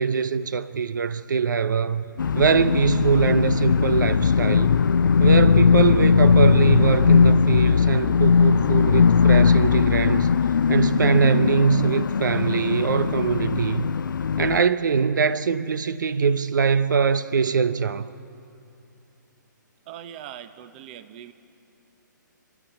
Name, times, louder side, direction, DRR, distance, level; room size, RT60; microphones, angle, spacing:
voice 1, 0.0-2.0 2.3-4.7 5.2-10.3 10.7-13.9 14.4-18.1, right 5 dB, 70° right, 0.8 m, -22 dB
sound 1, 2.2-14.6, left 6 dB, 75° left, 0.5 m, -19 dB
voice 2, 19.9-21.3, right 10 dB, 30° right, 0.9 m, -41 dB
30.0 x 11.0 x 8.8 m
hypercardioid pair, 145°, 11 cm